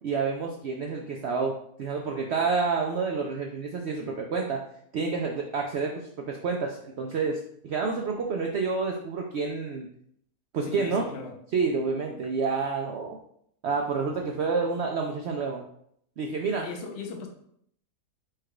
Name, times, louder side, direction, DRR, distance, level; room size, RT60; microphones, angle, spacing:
voice 1, 0.0-4.6 4.9-9.9 10.5-11.0 11.5-13.2 13.6-15.6 16.2-16.7, right 4 dB, 80° right, 1 dB, 0.6 m, -29 dB
voice 2, 10.6-11.4 16.6-17.3, left 4 dB, 60° left, 2 dB, 0.7 m, -37 dB
4.5 x 2.4 x 4.7 m, 0.68 s
omnidirectional pair, 1.7 m